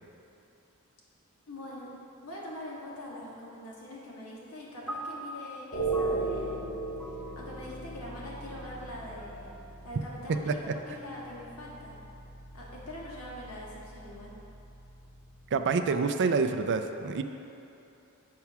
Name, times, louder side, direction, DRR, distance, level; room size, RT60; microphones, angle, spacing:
voice 1, 1.5-1.9 2.2-6.7 7.0-9.5 9.8-12.0 12.5-14.3, left 1 dB, 75° left, -4 dB, 1.6 m, -43 dB
sound 1, 4.9-11.3, equal, ahead, 0.5 m, -45 dB
sound 2, 5.7-15.9, right 3 dB, 50° left, 1.2 m, -38 dB
voice 2, 15.5-17.2, right 4 dB, 55° right, 8 dB, 0.4 m, -27 dB
7.3 x 4.6 x 5.8 m, 2.9 s
head